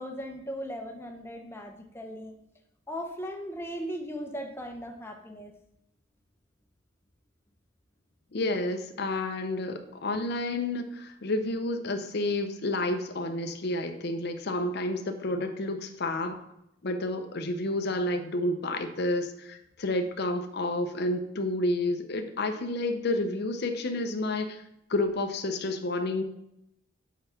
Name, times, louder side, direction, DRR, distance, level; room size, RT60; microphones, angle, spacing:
voice 1, 0.0-2.3 2.9-5.5, equal, 10° left, 3 dB, 0.8 m, -38 dB
voice 2, 8.3-16.4 16.8-24.6 24.9-26.2, left 2 dB, 55° left, 7 dB, 0.7 m, -30 dB
5.5 x 4.7 x 5.7 m, 0.80 s
head